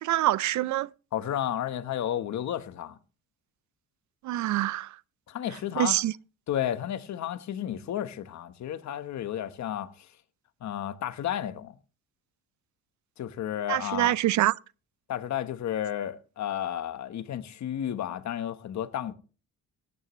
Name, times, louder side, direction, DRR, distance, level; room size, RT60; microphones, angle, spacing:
voice 1, 0.0-0.9 4.2-4.9 5.8-6.1 13.7-14.5, right 15 dB, 70° right, 0.5 m, -25 dB
voice 2, 1.1-3.0 5.3-6.0 6.5-10.1 10.6-11.7 13.2-14.2 15.1-19.1, left 10 dB, 65° left, 1.2 m, -32 dB
17.5 x 9.8 x 3.2 m
cardioid pair, 90°, 30 cm